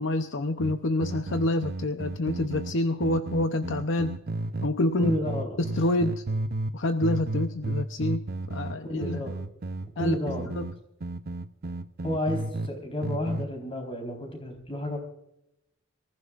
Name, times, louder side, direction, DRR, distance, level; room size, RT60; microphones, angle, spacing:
voice 1, 0.0-4.2 4.6-5.1 5.7-6.2 6.7-9.2 10.0-10.2 10.6-10.7, left 1 dB, 65° left, 8 dB, 0.7 m, -27 dB
sound 1, 0.6-4.7 5.0-6.8 7.0-12.7 13.0-13.5, right 2 dB, 50° right, 0.7 m, -33 dB
voice 2, 5.0-5.6 8.8-9.3 10.0-10.5 12.0-15.0, equal, 25° left, 3 dB, 4.1 m, -31 dB
25.0 x 15.0 x 2.5 m, 0.81 s
head